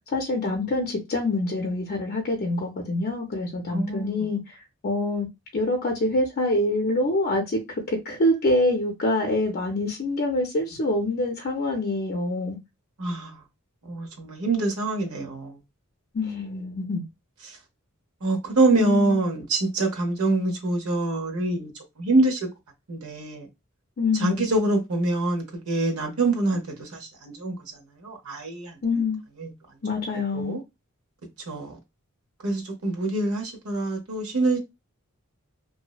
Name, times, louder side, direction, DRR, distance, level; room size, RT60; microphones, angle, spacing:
voice 1, 0.1-4.6 4.8-5.3 5.5-7.6 7.9-12.6 16.1-17.0 18.7-19.2 24.0-24.5 28.8-29.2 29.8-30.6, left 2 dB, 45° left, 0.5 m, -25 dB
voice 2, 3.7-4.2 13.0-13.4 13.8-15.6 17.5-17.6 18.2-21.7 22.0-22.4 22.9-23.5 24.2-28.8 29.4-29.5 30.3-30.6 31.5-31.8 32.4-34.6, right 2 dB, 80° right, 0.8 m, -25 dB
2.6 x 2.1 x 2.3 m
head